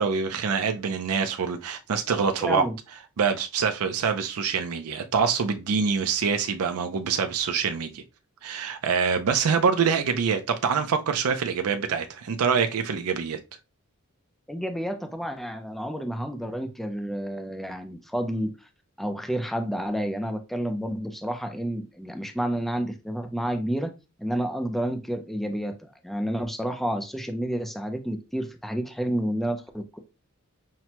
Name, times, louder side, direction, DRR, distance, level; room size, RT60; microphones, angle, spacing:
voice 1, 0.0-2.7 3.2-8.0 8.4-13.4, right 6 dB, 85° right, 0.5 m, -25 dB
voice 2, 2.4-2.7 14.5-18.5 19.0-23.9 24.2-30.0, equal, ahead, 0.4 m, -30 dB
5.8 x 2.1 x 2.9 m
head